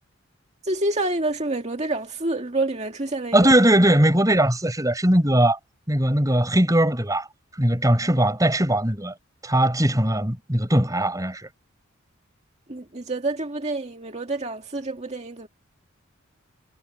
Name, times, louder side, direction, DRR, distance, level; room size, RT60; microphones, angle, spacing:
voice 1, 0.6-3.5 12.7-15.5, right 2 dB, 35° right, 2.0 m, -28 dB
voice 2, 3.3-5.6 5.9-7.3 7.6-9.1 9.4-11.5, right 1 dB, 15° right, 4.7 m, -20 dB
head